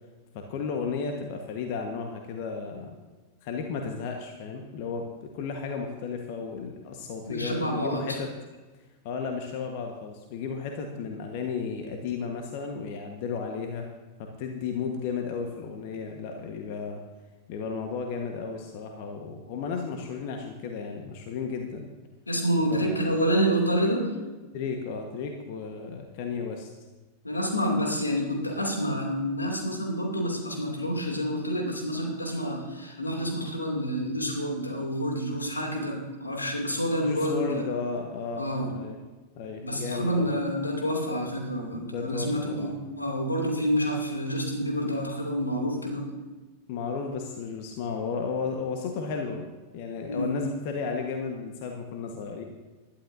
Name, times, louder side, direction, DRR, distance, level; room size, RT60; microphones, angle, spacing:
voice 1, 0.3-2.9 3.4-8.3 9.0-13.9 14.2-17.0 17.5-21.9 22.7-23.0 24.5-26.7 37.0-38.4 38.7-39.0 39.3-40.4 41.7-42.7 46.7-52.4, left 5 dB, 45° left, 3 dB, 1.4 m, -34 dB
voice 2, 7.3-8.2 22.3-24.1 27.2-37.7 38.4-38.7 39.6-46.1 50.1-50.4, equal, 80° left, 0 dB, 2.7 m, -28 dB
20.5 x 12.0 x 2.7 m, 1.3 s
figure-of-eight pair, 90°, 0 cm